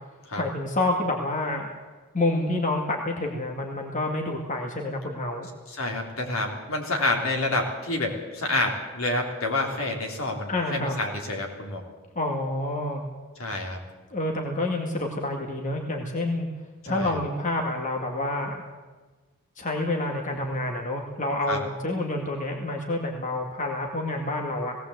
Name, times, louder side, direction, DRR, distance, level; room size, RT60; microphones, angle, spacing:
voice 1, 0.4-1.7 2.1-5.5 10.5-10.9 12.2-13.0 14.1-16.5 16.9-18.6 19.6-24.8, left 2 dB, 35° left, 1 dB, 2.1 m, -28 dB
voice 2, 5.7-11.8 13.4-13.8 16.8-17.2 21.5-21.6, left 2 dB, 65° left, 1 dB, 3.6 m, -28 dB
18.5 x 17.5 x 8.1 m, 1.3 s
head